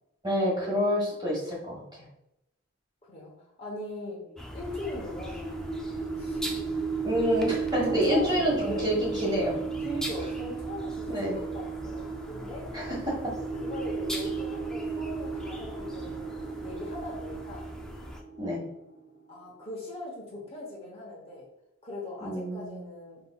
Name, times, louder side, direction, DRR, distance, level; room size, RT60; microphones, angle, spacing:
voice 1, 0.2-1.8 7.0-9.5 11.1-11.3 12.7-13.0 18.4-18.6 22.2-22.8, equal, 20° right, -4 dB, 1.3 m, -27 dB
voice 2, 3.1-4.3 4.5-5.8 6.2-6.6 7.2-7.3 7.8-8.3 8.6-8.9 9.8-12.7 13.5-17.7 19.3-21.5 21.8-23.2, left 2 dB, 25° left, -4 dB, 0.9 m, -40 dB
sound 1, 4.3-19.3, right 5 dB, 50° left, 1.2 m, -35 dB
sound 2, 4.4-18.2, equal, 5° left, 0.3 m, -42 dB
4.9 x 3.5 x 2.3 m, 0.84 s
head